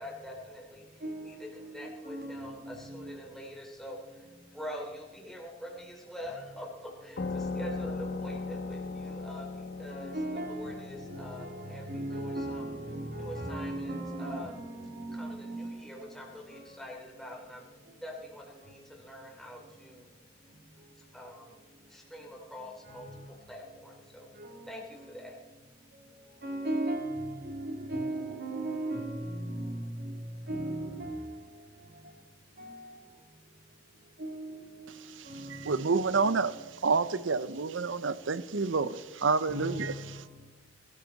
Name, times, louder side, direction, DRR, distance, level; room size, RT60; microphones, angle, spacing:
voice 1, 0.0-4.3 4.5-10.2 10.5-12.6 13.1-14.5 15.1-17.7 18.0-20.1 21.1-21.6 21.9-24.3 24.6-25.4, equal, ahead, 3.2 m, -45 dB
voice 2, 1.0-3.2 9.9-15.8 16.5-16.7 22.9-23.2 24.3-24.7 25.0-25.1 25.9-26.0 26.4-31.5 32.6-33.0 34.2-34.9 35.2-35.8 36.2-36.4 39.5-40.2, right 1 dB, 55° right, 2.7 m, -37 dB
sound 1, 7.2-16.4, left 3 dB, 60° left, 1.1 m, -40 dB
voice 3, 35.5-36.5 36.8-39.9, right 4 dB, 85° right, 0.7 m, -28 dB
21.0 x 13.5 x 4.0 m
head